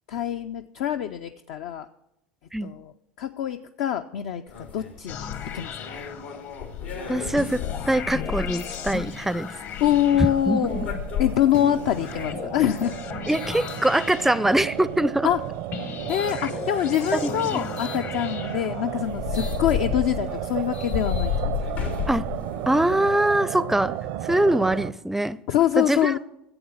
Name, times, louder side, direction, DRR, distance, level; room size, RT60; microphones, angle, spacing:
voice 1, 0.1-1.9 2.6-2.9 3.2-5.2 5.5-5.9 9.8-12.9 15.2-15.4 16.1-21.6 25.5-26.2, left 11 dB, 65° left, 0.5 m, -25 dB
sound 1, 4.5-14.5 15.1-16.4 17.8-18.0 18.6-18.7 18.9-23.1, left 8 dB, 80° left, 2.1 m, -33 dB
sound 2, 5.1-6.8 7.4-10.9 11.5-15.1 15.7-19.2, left 7 dB, 50° left, 1.0 m, -37 dB
voice 2, 7.1-9.6 10.2-10.9 13.3-15.3 17.1-17.7 22.1-22.3 22.7-23.9 24.2-25.4 25.8-26.1, right 1 dB, 5° right, 0.5 m, -23 dB
sound 3, 10.1-24.9, right 13 dB, 65° right, 0.6 m, -34 dB
11.5 x 7.9 x 7.2 m
hypercardioid pair, 80°, 6 cm